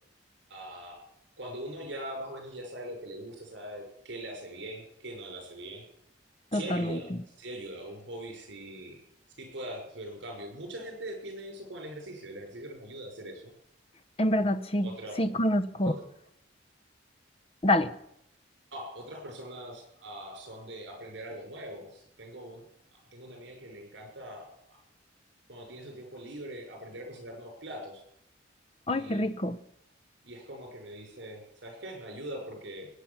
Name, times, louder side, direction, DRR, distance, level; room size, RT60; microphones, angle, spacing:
voice 1, 0.5-1.0 1.4-5.9 6.5-7.1 7.4-9.0 9.4-13.5 14.8-15.2 15.8-15.9 18.7-22.6 22.9-24.8 25.5-28.0 28.9-29.3 30.2-32.9, right 1 dB, 65° right, 3 dB, 6.0 m, -42 dB
voice 2, 6.5-7.2 14.2-14.9 15.2-15.9 17.6-18.0 28.9-29.6, left 1 dB, 30° left, 12 dB, 0.7 m, -27 dB
19.5 x 9.2 x 7.2 m, 0.76 s
head